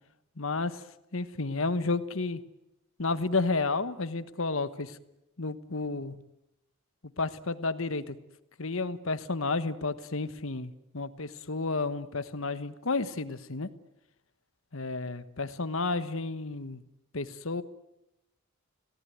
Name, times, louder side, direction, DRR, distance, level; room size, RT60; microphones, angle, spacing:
voice 1, 0.4-0.8 1.1-2.4 3.0-5.0 5.4-6.2 7.2-8.2 8.6-13.7 14.7-16.8 17.1-17.6, left 3 dB, 60° left, 12 dB, 1.3 m, -31 dB
27.0 x 17.5 x 9.5 m, 0.88 s
head